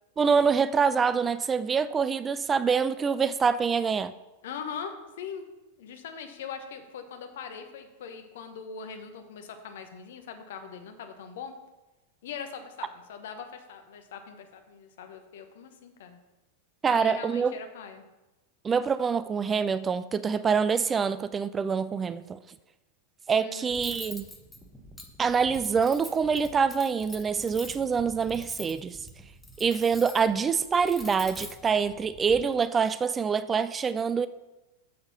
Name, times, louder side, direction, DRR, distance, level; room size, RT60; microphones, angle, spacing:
voice 1, 0.2-4.1 16.8-17.5 18.6-22.4 23.3-24.2 25.2-29.0 29.6-34.3, right 6 dB, 20° right, 0.3 m, -25 dB
voice 2, 4.4-5.4 5.8-11.6 12.2-16.2 16.9-18.0 23.4-23.7, left 6 dB, 60° left, 1.0 m, -41 dB
Cutlery silverware, 23.7-32.4, left 1 dB, 5° left, 1.2 m, -45 dB
6.7 x 6.7 x 5.6 m
figure-of-eight pair, 90°, 0 cm